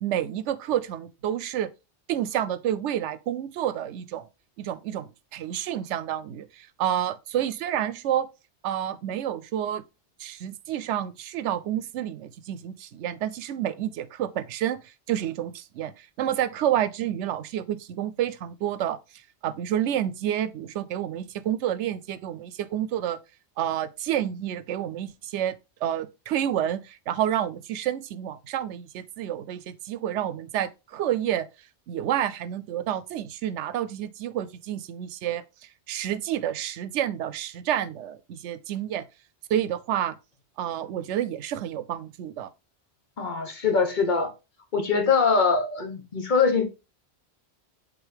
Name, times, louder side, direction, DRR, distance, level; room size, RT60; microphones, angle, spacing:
voice 1, 0.0-1.7 2.1-4.2 4.6-8.3 8.6-9.8 10.2-14.8 15.1-19.0 19.4-23.2 23.6-25.6 25.8-31.5 31.9-35.4 35.9-39.0 39.5-40.2 40.6-42.5, right 11 dB, 90° right, 0.9 m, -29 dB
voice 2, 43.2-44.3 44.7-46.7, left 5 dB, 45° left, 1.3 m, -23 dB
8.1 x 3.6 x 3.4 m
omnidirectional pair, 1.2 m